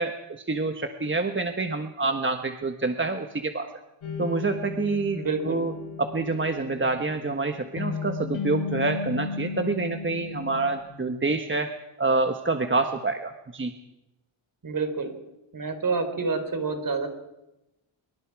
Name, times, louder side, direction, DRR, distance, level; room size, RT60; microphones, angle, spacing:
voice 1, 0.0-3.7 4.2-5.7 6.0-11.7 12.0-13.7, right 3 dB, 25° right, 6 dB, 1.3 m, -27 dB
sound 1, 4.0-11.4, left 5 dB, 85° left, 4.6 m, -35 dB
voice 2, 5.1-5.6 14.6-15.1 15.5-17.1, right 4 dB, 45° right, 7 dB, 4.0 m, -28 dB
25.5 x 23.0 x 4.8 m, 0.93 s
wide cardioid pair, 110°, 46 cm